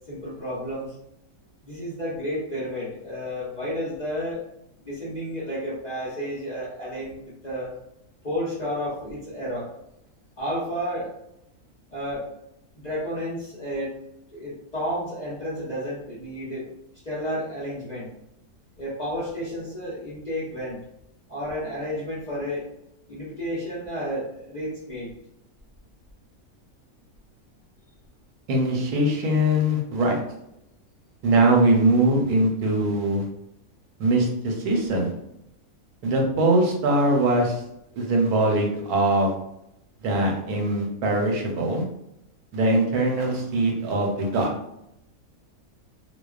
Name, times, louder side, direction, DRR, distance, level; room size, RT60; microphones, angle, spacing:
voice 1, 0.1-0.9 1.6-4.4 4.8-7.8 8.2-9.7 10.4-11.1 11.9-12.3 12.7-13.9 14.3-16.7 17.0-18.1 18.8-20.8 21.3-22.6 23.1-25.1, equal, 50° left, -9 dB, 0.5 m, -31 dB
voice 2, 28.5-30.2 31.2-33.2 34.0-35.1 36.0-37.6 37.9-39.3 40.0-41.8 42.5-44.5, right 1 dB, 85° right, 0 dB, 1.1 m, -22 dB
2.4 x 2.2 x 2.3 m, 0.81 s
omnidirectional pair, 1.6 m